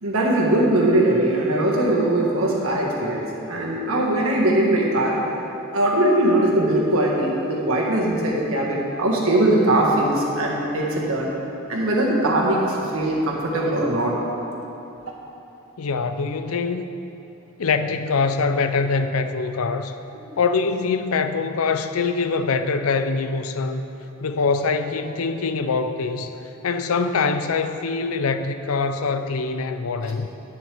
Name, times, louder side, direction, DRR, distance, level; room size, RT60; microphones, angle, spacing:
voice 1, 0.0-5.2 5.7-11.3 11.7-14.1 20.1-20.3, right 1 dB, 75° right, -3 dB, 1.7 m, -21 dB
voice 2, 15.8-16.8 17.6-19.9 20.4-23.9 24.2-26.3 26.6-30.3, left 4 dB, 80° left, 9 dB, 0.5 m, -23 dB
10.5 x 9.4 x 3.5 m, 3.0 s
head